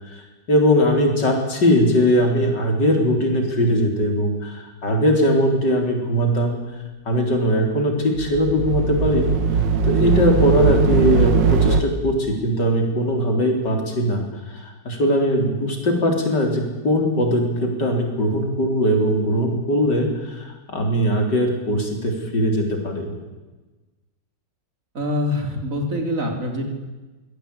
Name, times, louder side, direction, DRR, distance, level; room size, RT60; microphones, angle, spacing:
voice 1, 0.5-6.6 7.1-9.2 9.8-23.1, equal, 75° left, 3 dB, 4.6 m, -20 dB
sound 1, 8.1-11.8, right 6 dB, 90° right, 1.9 m, -19 dB
voice 2, 24.9-26.6, left 1 dB, 45° right, 4 dB, 3.8 m, -24 dB
23.5 x 17.0 x 8.6 m, 1.2 s
omnidirectional pair, 1.9 m